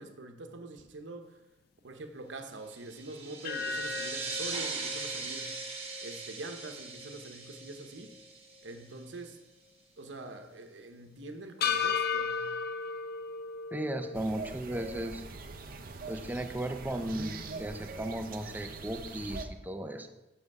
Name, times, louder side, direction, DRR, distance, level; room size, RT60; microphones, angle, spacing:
voice 1, 0.0-1.4 1.8-5.5 6.0-8.1 8.6-9.4 10.0-12.4, right 2 dB, 90° right, 6 dB, 0.9 m, -44 dB
sound 1, 2.7-8.9, right 4 dB, 35° right, 1.4 m, -40 dB
sound 2, 3.4-7.7 8.1-8.2 11.6-14.2, left 6 dB, 60° left, 0.5 m, -35 dB
voice 2, 13.7-15.2 16.1-20.1, right 1 dB, 10° right, 7 dB, 0.6 m, -36 dB
sound 3, 14.1-19.5, right 3 dB, 50° right, 0.6 m, -43 dB
7.7 x 6.5 x 4.7 m, 1.0 s
head